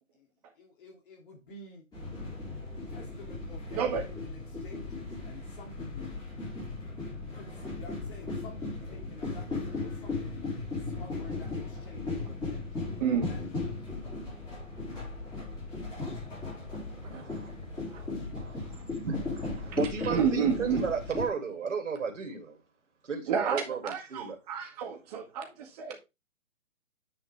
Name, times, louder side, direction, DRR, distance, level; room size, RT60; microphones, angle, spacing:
voice 1, 0.6-1.8 2.9-6.2 7.3-12.8 13.3-13.6, left 3 dB, 40° left, 2.8 m, -50 dB
sound 1, 1.9-21.3, left 3 dB, 10° left, 4.0 m, -37 dB
voice 2, 13.0-13.3 14.9-15.1 17.1-17.2 17.9-18.1 20.0-20.9 23.3-26.0, right 7 dB, 30° right, 2.0 m, -30 dB
voice 3, 17.0-17.5 18.4-22.6 23.1-24.4, right 5 dB, 60° right, 3.0 m, -34 dB
9.7 x 5.3 x 3.5 m
figure-of-eight pair, 140°, 41 cm